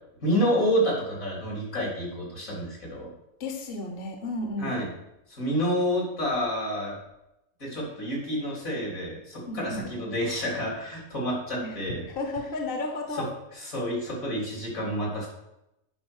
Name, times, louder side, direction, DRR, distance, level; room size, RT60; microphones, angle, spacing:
voice 1, 0.2-3.1 4.6-4.9 5.3-7.0 7.6-12.0 13.6-15.3, equal, 80° left, -3 dB, 4.0 m, -28 dB
voice 2, 3.4-4.8 9.5-9.9 11.6-11.8 12.1-13.3, left 2 dB, 45° left, 4 dB, 1.1 m, -33 dB
9.3 x 5.4 x 6.4 m, 0.89 s
omnidirectional pair, 1.4 m